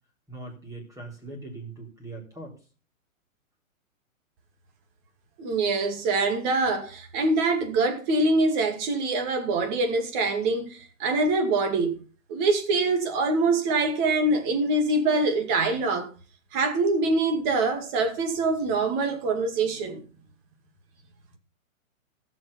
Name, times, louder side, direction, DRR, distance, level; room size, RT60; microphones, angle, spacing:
voice 1, 0.3-2.6, right 2 dB, 10° right, 4.0 m, -40 dB
voice 2, 5.4-12.0 12.3-16.1 16.5-20.0, right 3 dB, 35° right, 2.4 m, -24 dB
16.0 x 6.3 x 5.6 m
hypercardioid pair, 140°, 41 cm